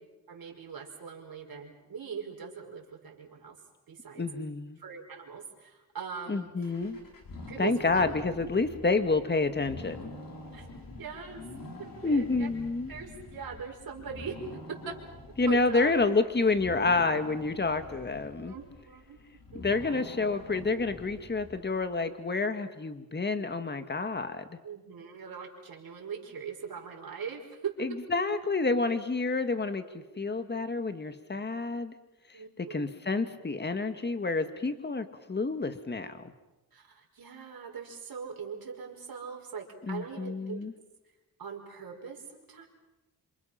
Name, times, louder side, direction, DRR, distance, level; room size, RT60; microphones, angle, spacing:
voice 1, 0.3-3.6 3.9-4.2 4.8-6.5 7.5-8.1 10.5-10.7 11.0-11.4 11.8-12.5 12.9-15.0 15.3-15.9 18.4-19.2 19.5-19.8 24.6-27.7 32.3-32.9 36.7-40.6 41.4-42.7, right 6 dB, 65° right, 1 dB, 5.5 m, -41 dB
voice 2, 4.2-4.8 6.3-7.0 7.6-10.1 12.0-12.9 15.4-18.5 19.5-24.6 27.8-32.0 32.3-36.3 39.9-40.7, left 3 dB, 25° left, 9 dB, 1.9 m, -29 dB
sound 1, 6.6-22.0, left 2 dB, 60° left, 4.3 m, -46 dB
29.0 x 26.5 x 5.9 m, 1.0 s
wide cardioid pair, 105°, 38 cm